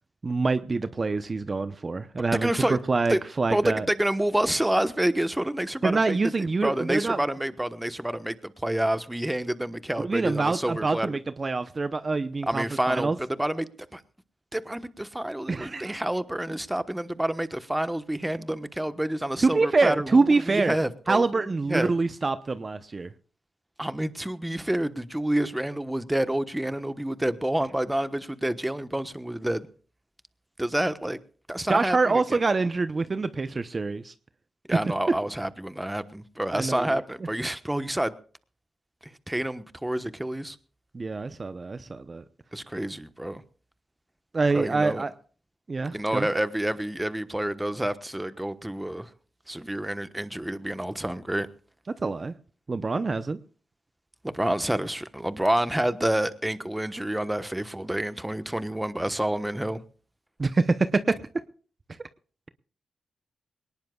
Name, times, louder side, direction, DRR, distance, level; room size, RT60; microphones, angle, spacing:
voice 1, 0.2-3.9 5.8-7.2 10.0-13.2 15.5-16.0 19.4-20.8 21.1-23.1 31.7-34.1 34.7-34.9 36.5-37.0 40.9-42.2 44.3-45.1 45.7-46.3 51.9-52.3 52.7-53.4 60.4-61.2, right 3 dB, 40° right, 0.8 m, -25 dB
voice 2, 2.4-2.8 3.1-3.2 3.5-11.2 12.4-14.0 14.5-21.9 23.8-29.7 30.6-31.2 31.5-32.4 34.7-38.1 39.0-40.6 42.5-43.4 44.5-45.0 45.9-49.1 49.5-51.5 54.2-59.8, right 1 dB, 10° right, 1.1 m, -28 dB
20.5 x 19.0 x 2.4 m
cardioid pair, 65°, 0 cm